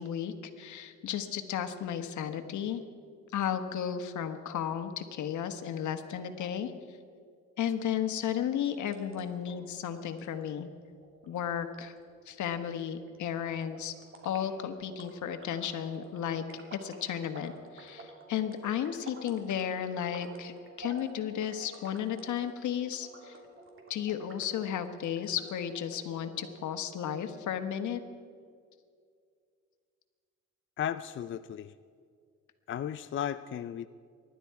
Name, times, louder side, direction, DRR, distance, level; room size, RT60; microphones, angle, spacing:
voice 1, 0.0-2.8 3.3-6.7 7.6-10.7 11.3-11.9 12.3-13.9 14.2-16.4 16.7-23.3 23.9-28.0, left 9 dB, 75° left, 8 dB, 1.4 m, -34 dB
sound 1, 8.6-26.6, right 1 dB, 45° right, 3.1 m, -51 dB
voice 2, 30.8-31.7 32.7-33.9, left 9 dB, 40° left, 12 dB, 0.5 m, -35 dB
25.0 x 12.0 x 4.7 m, 2.2 s
cardioid pair, 90°, 30 cm